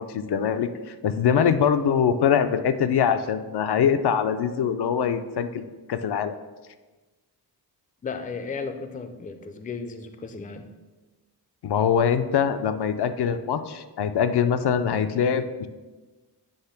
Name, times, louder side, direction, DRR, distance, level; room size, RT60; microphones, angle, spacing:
voice 1, 0.0-5.6 5.9-6.4 11.6-15.7, left 7 dB, 75° left, 9 dB, 0.5 m, -23 dB
voice 2, 8.0-10.7, left 4 dB, 20° left, 7 dB, 0.4 m, -35 dB
7.9 x 3.3 x 5.7 m, 1.2 s
wide cardioid pair, 180°, 40 cm